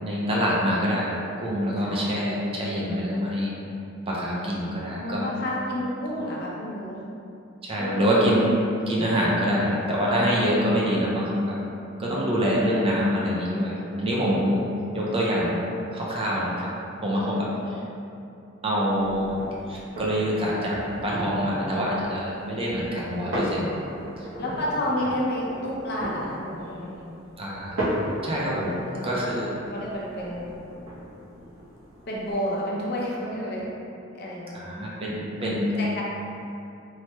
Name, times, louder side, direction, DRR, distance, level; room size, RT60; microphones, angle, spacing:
voice 1, 0.0-3.5 4.1-5.3 7.6-8.6 8.9-11.6 12.0-14.6 14.9-15.6 15.9-16.7 17.0-17.5 18.6-23.7 24.2-24.3 27.4-27.9 28.2-28.7 29.0-29.5 34.5-35.8, equal, 30° right, -6 dB, 0.5 m, -25 dB
voice 2, 1.8-2.1 4.9-7.0 7.8-8.1 9.0-9.4 12.6-12.9 17.1-17.6 24.4-27.0 28.6-29.1 29.7-30.5 32.1-33.7 34.1-34.8 35.4-36.0, equal, 55° left, -5 dB, 0.5 m, -31 dB
sound 1, 18.9-32.3, equal, 75° right, 0.8 m, -36 dB
3.1 x 2.2 x 2.9 m, 2.7 s
head